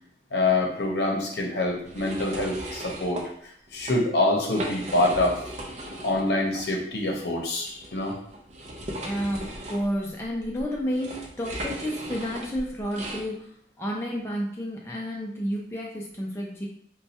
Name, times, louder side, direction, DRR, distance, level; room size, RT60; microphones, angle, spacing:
voice 1, 0.3-3.2 3.7-5.4 6.0-8.1, left 2 dB, 70° left, 0 dB, 0.7 m, -25 dB
sound 1, 1.9-3.3 3.7-4.0 4.4-6.3 6.6-6.7 7.6-13.3, right 1 dB, 40° right, 0.5 m, -37 dB
voice 2, 9.0-16.7, equal, 15° left, -3 dB, 0.4 m, -31 dB
4.2 x 2.2 x 2.7 m, 0.68 s
head